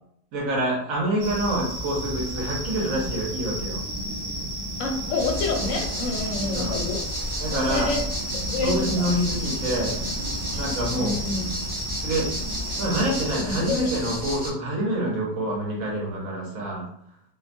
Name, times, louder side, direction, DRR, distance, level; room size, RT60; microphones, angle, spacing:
voice 1, 0.3-3.8 6.5-6.7 7.4-7.9 8.6-10.0 10.5-11.1 12.0-12.3 12.8-16.8, right 1 dB, 60° right, -3 dB, 1.1 m, -26 dB
sound 1, 1.2-13.3, right 1 dB, 90° right, 0.5 m, -32 dB
voice 2, 4.8-7.0 7.5-8.0 8.3-9.1 11.0-11.5 13.4-14.1, left 3 dB, 70° left, 2 dB, 0.8 m, -28 dB
sound 2, 5.2-14.5, equal, 20° right, 0.7 m, -33 dB
2.8 x 2.2 x 2.4 m, 0.71 s
omnidirectional pair, 1.8 m